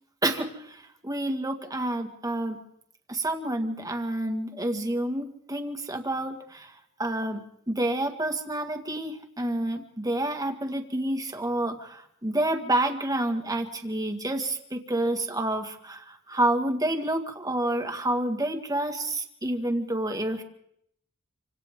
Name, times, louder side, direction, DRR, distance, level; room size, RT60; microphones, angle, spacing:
voice 1, 0.2-2.6 3.1-7.4 7.7-20.4, right 1 dB, 15° right, 5 dB, 1.9 m, -29 dB
27.5 x 26.5 x 3.8 m, 0.71 s
head